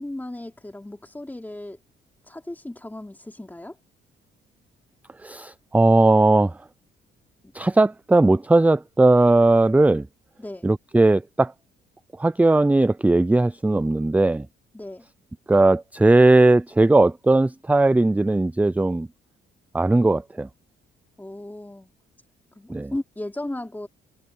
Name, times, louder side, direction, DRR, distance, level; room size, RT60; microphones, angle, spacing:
voice 1, 0.0-1.8 2.2-3.8 7.4-7.5 10.4-10.7 14.7-15.0 21.2-21.9 22.5-23.9, left 1 dB, 10° left, 3.3 m, -35 dB
voice 2, 5.2-6.5 7.5-10.1 10.6-11.5 12.2-14.5 15.5-19.1 19.7-20.5 22.7-22.9, right 2 dB, 5° right, 0.4 m, -18 dB
cardioid pair, 90°, 20 cm